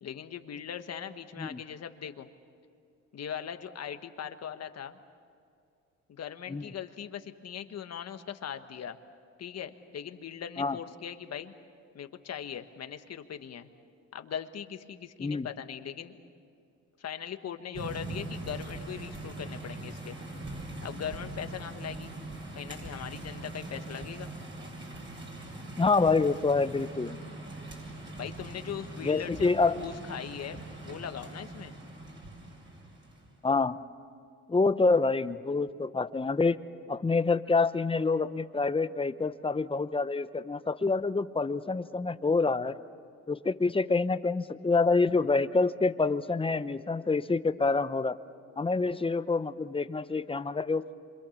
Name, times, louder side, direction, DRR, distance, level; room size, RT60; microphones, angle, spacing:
voice 1, 0.0-2.3 3.1-5.0 6.1-9.0 9.4-11.5 11.9-13.7 14.1-16.2 17.0-20.2 20.8-22.1 22.5-24.3 28.2-31.8, left 8 dB, 55° left, 8 dB, 1.4 m, -40 dB
sound 1, 17.7-33.3, right 2 dB, 40° right, 7.7 m, -42 dB
voice 2, 25.8-27.2 29.0-29.8 33.4-33.8 34.5-36.6 36.9-42.8 43.3-48.2 48.6-50.8, left 3 dB, 20° left, 13 dB, 0.8 m, -27 dB
27.0 x 25.0 x 7.2 m, 2.5 s
cardioid pair, 90°, 30 cm